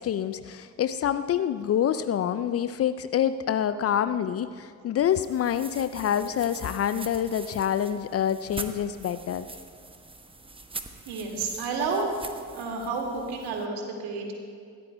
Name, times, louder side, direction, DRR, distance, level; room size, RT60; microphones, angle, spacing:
voice 1, 0.0-9.5, left 9 dB, 35° left, 12 dB, 0.5 m, -27 dB
sound 1, 5.0-13.7, right 3 dB, 10° right, 1.0 m, -43 dB
voice 2, 11.1-12.1 12.5-14.3, right 4 dB, 65° right, 1 dB, 2.3 m, -30 dB
21.5 x 16.0 x 2.3 m, 2.2 s
figure-of-eight pair, 45°, 42 cm